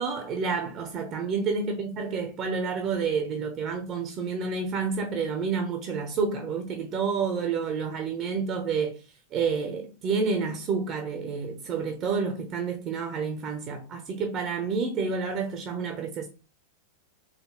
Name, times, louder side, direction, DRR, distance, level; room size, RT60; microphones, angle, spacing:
voice 1, 0.0-9.0 9.3-16.3, right 5 dB, 35° right, 0.7 m, -29 dB
4.0 x 3.5 x 3.0 m
figure-of-eight pair, 90°, 0 cm